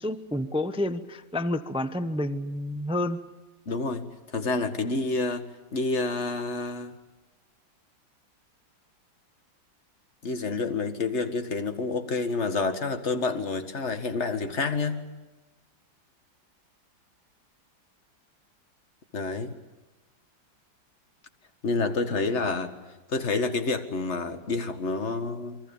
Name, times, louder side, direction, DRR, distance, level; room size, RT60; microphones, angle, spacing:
voice 1, 0.0-3.2, left 1 dB, 5° right, 11 dB, 0.6 m, -29 dB
voice 2, 3.7-7.0 10.2-15.1 19.1-19.6 21.6-22.7 23.1-25.6, left 3 dB, 35° left, 8 dB, 2.0 m, -28 dB
28.5 x 23.5 x 7.3 m, 1.1 s
omnidirectional pair, 2.1 m